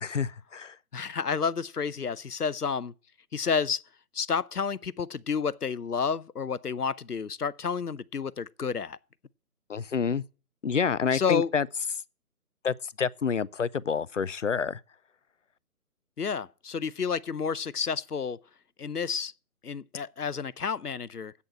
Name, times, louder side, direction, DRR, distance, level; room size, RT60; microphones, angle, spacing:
voice 1, 0.0-0.8 9.7-10.2 10.6-11.7 12.6-14.8, left 6 dB, 55° left, 0.5 m, -28 dB
voice 2, 0.9-2.9 3.3-3.8 4.1-9.0 11.1-11.5 16.2-18.4 18.8-19.3 19.6-21.3, left 6 dB, 85° left, 0.7 m, -30 dB
8.4 x 6.9 x 8.5 m
figure-of-eight pair, 145°, 45 cm